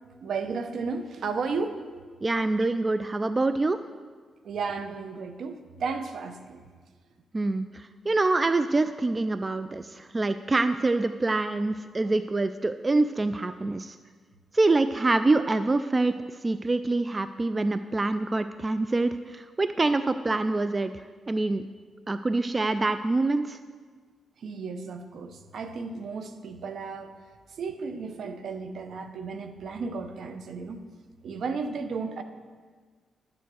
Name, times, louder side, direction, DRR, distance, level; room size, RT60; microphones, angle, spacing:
voice 1, 0.2-1.8 2.6-2.7 4.4-6.7 24.4-27.2 27.5-30.8 31.2-32.2, right 4 dB, 70° right, 8 dB, 0.8 m, -34 dB
voice 2, 2.2-3.8 7.3-14.0 14.5-16.2 16.4-20.9 21.3-21.6 22.1-23.6, right 2 dB, 25° right, 11 dB, 0.4 m, -25 dB
11.0 x 7.0 x 6.3 m, 1.5 s
cardioid pair, 80°, 0 cm